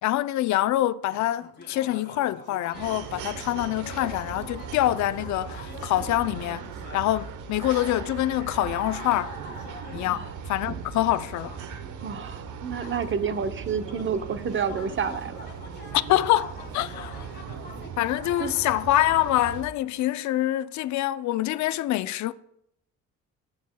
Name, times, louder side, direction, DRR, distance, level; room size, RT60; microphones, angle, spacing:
voice 1, 0.0-6.6 6.9-9.3 9.9-11.5 15.9-17.3 18.0-22.3, left 14 dB, 70° left, 0.5 m, -25 dB
sound 1, 1.1-7.3 7.6-17.9, left 3 dB, 35° left, 1.6 m, -46 dB
sound 2, 2.7-19.7, right 7 dB, 80° right, 0.8 m, -38 dB
voice 2, 12.0-15.5 18.4-18.5, right 6 dB, 40° right, 0.7 m, -29 dB
13.5 x 6.5 x 2.2 m
cardioid pair, 90°, 30 cm